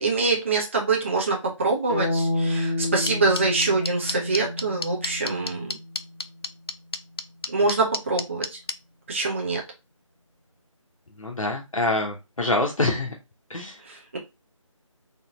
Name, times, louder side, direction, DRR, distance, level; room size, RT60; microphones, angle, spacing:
voice 1, 0.0-5.8 7.5-8.6 9.1-9.6 13.8-14.2, right 3 dB, 25° right, 0 dB, 0.7 m, -25 dB
sound 1, 1.9-5.9, left 2 dB, 5° left, 1.6 m, -29 dB
sound 2, 3.1-8.7, left 3 dB, 50° left, 0.4 m, -29 dB
voice 2, 11.2-13.1 13.5-13.8, left 2 dB, 75° left, 0 dB, 1.0 m, -25 dB
4.1 x 3.0 x 3.7 m, 0.25 s
figure-of-eight pair, 160°, 17 cm